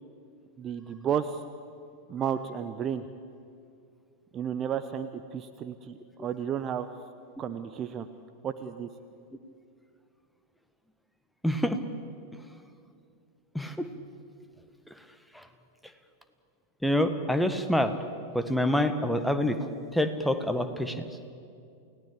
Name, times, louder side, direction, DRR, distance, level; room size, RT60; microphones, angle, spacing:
voice 1, 0.6-1.4 2.1-3.0 4.3-6.9 7.4-8.1 8.4-8.9, right 8 dB, 30° right, 10 dB, 0.9 m, -32 dB
voice 2, 11.4-11.8 13.5-13.7 15.3-15.4 16.8-18.0 18.3-19.7 19.9-21.0, left 1 dB, ahead, 8 dB, 1.6 m, -26 dB
29.0 x 18.0 x 8.5 m, 2.4 s
figure-of-eight pair, 90°, 0 cm